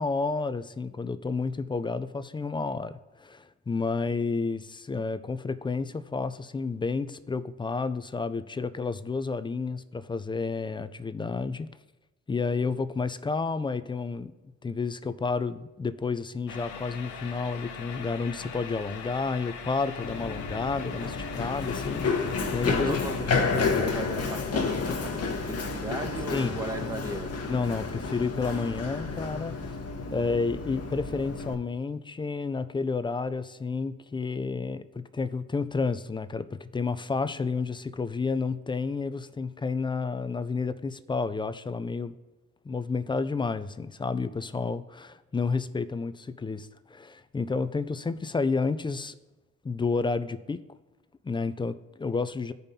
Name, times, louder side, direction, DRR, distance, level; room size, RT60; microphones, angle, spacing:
voice 1, 0.0-11.7 12.3-14.3 14.6-23.0 26.3-27.0 27.5-29.6 30.1-42.1 42.6-49.2 49.6-50.6 51.2-52.5, left 4 dB, 15° left, 12 dB, 0.4 m, -30 dB
sound 1, 16.5-23.2, left 5 dB, 80° left, 0.9 m, -41 dB
Run, 20.0-31.5, left 4 dB, 55° left, 1.1 m, -30 dB
voice 2, 22.6-25.3 25.6-27.3, right 1 dB, 10° right, 4 dB, 1.1 m, -36 dB
15.0 x 5.2 x 2.8 m, 1.1 s
cardioid pair, 90°, 30 cm